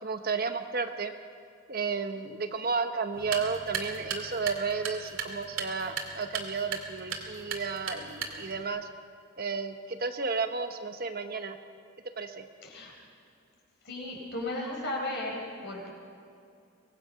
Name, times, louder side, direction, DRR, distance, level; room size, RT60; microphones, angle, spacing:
voice 1, 0.0-1.1 1.7-8.9 9.4-11.6 12.2-12.4, right 5 dB, 45° right, 7 dB, 1.0 m, -32 dB
sound 1, 3.1-8.6, right 5 dB, 65° right, 2.4 m, -38 dB
voice 2, 12.6-12.9 13.8-15.9, left 1 dB, 55° left, -1 dB, 5.3 m, -35 dB
24.0 x 19.0 x 5.7 m, 2.5 s
head